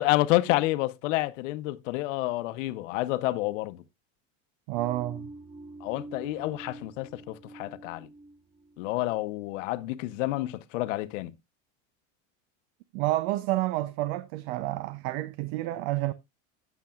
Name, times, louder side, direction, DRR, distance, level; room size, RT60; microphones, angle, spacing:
voice 1, 0.0-3.8 5.8-8.1 8.8-11.3, left 18 dB, 90° left, 0.8 m, -29 dB
voice 2, 4.7-5.3 12.9-16.1, right 17 dB, 60° right, 0.6 m, -29 dB
sound 1, 4.8-9.8, right 2 dB, 10° right, 0.4 m, -46 dB
11.5 x 8.1 x 2.4 m
supercardioid pair, 145°, 36 cm